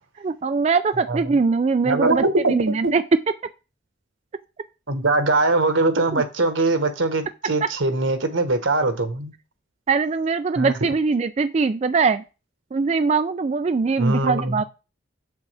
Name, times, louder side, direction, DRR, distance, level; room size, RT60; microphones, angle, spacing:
voice 1, 0.2-3.0 6.1-6.2 9.9-12.2 12.7-14.6, right 4 dB, 35° right, 0.3 m, -22 dB
voice 2, 1.9-2.5 2.8-2.9 4.9-9.3 10.6-10.8 14.0-14.6, right 2 dB, 85° right, 1.2 m, -21 dB
7.1 x 7.0 x 3.4 m
head